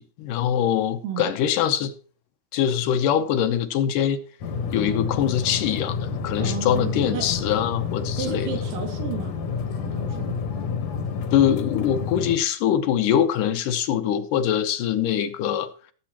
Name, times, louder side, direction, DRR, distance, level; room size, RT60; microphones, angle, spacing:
voice 1, 0.0-1.9 2.5-4.2 4.7-8.5 11.3-15.7, left 9 dB, 75° left, 9 dB, 2.3 m, -23 dB
sound 1, 4.4-12.4, left 5 dB, 60° left, 2.2 m, -29 dB
voice 2, 6.4-7.2 8.2-9.3 9.8-10.3, right 6 dB, 75° right, 2 dB, 4.0 m, -32 dB
17.5 x 8.2 x 3.0 m, 0.41 s
omnidirectional pair, 4.0 m